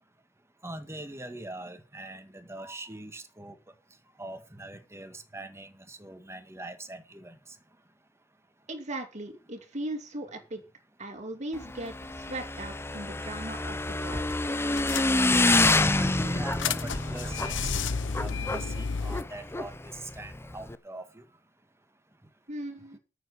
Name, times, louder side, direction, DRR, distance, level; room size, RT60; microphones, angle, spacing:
voice 1, 0.6-3.6 4.2-7.3 15.9-17.7 18.2-21.2, right 2 dB, 15° right, 8 dB, 1.8 m, -42 dB
voice 2, 8.7-10.6 11.0-14.3 22.5-23.0, right 1 dB, 40° right, 4 dB, 2.9 m, -38 dB
Motorcycle / Engine, 11.5-20.8, left 2 dB, 15° left, 0.6 m, -28 dB
sound 1, 13.8-14.0 14.3-14.4 14.8-15.6 16.1-19.2, left 6 dB, 80° left, 0.9 m, -32 dB
9.3 x 7.3 x 8.3 m, 0.32 s
head